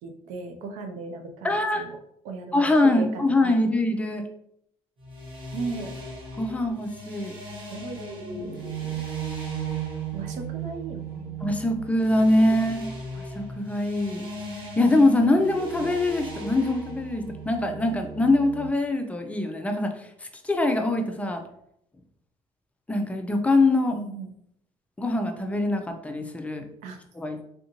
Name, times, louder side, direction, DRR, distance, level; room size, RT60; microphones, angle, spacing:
voice 1, 0.0-2.0 2.2-3.7 5.5-6.0 7.7-9.0 10.1-11.4 23.9-24.3 26.8-27.0, right 3 dB, 85° right, 6 dB, 0.5 m, -37 dB
voice 2, 1.4-1.8 2.5-4.3 6.4-7.3 11.4-12.8 13.3-14.3 14.8-20.1 20.4-21.4 22.9-24.0 25.0-26.7 27.2-27.4, left 2 dB, 10° left, 4 dB, 0.4 m, -23 dB
sound 1, 5.0-18.7, right 4 dB, 45° right, 1.2 m, -36 dB
3.5 x 2.5 x 2.8 m, 0.73 s
cardioid pair, 110°, 12 cm